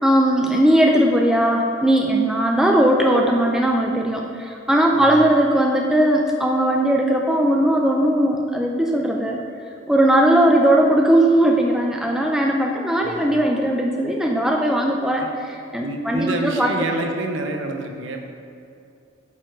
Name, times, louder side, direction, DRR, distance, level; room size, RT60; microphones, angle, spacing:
voice 1, 0.0-9.4 9.9-15.2 15.7-16.7, right 1 dB, 5° right, 0 dB, 0.4 m, -18 dB
voice 2, 13.0-13.3 15.2-15.3 15.8-18.2, right 2 dB, 65° right, 3 dB, 0.7 m, -28 dB
8.2 x 4.5 x 4.7 m, 2.6 s
head